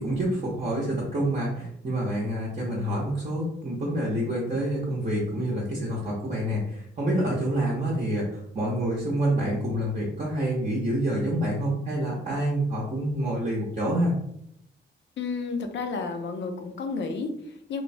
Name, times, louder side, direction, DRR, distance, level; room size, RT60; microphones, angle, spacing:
voice 1, 0.0-14.1, right 1 dB, 35° right, -4 dB, 0.7 m, -27 dB
voice 2, 15.2-17.8, left 4 dB, 60° left, 5 dB, 0.5 m, -31 dB
3.0 x 2.1 x 2.6 m, 0.73 s
cardioid pair, 110°, 21 cm